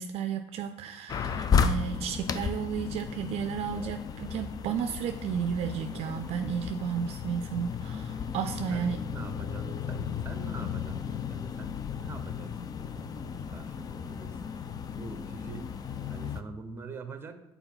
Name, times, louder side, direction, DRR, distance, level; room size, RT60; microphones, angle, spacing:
voice 1, 0.0-9.0, right 7 dB, 50° right, 8 dB, 0.4 m, -33 dB
sound 1, 1.1-16.4, left 6 dB, 30° left, 0.4 m, -34 dB
voice 2, 8.7-14.4 14.9-15.7 16.1-17.4, right 3 dB, 20° right, 8 dB, 0.8 m, -44 dB
5.6 x 4.2 x 5.8 m, 0.93 s
supercardioid pair, 95°, 13 cm